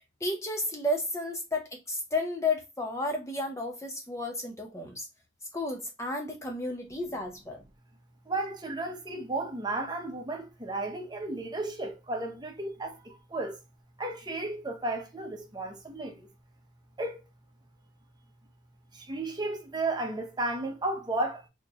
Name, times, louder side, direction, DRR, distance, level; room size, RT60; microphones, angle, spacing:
voice 1, 0.2-5.1 5.5-7.6, left 2 dB, 15° left, 0.6 m, -32 dB
voice 2, 8.3-13.6 14.0-16.3 17.0-17.2 18.9-21.5, right 2 dB, 20° right, 0.8 m, -33 dB
4.4 x 2.9 x 2.4 m
head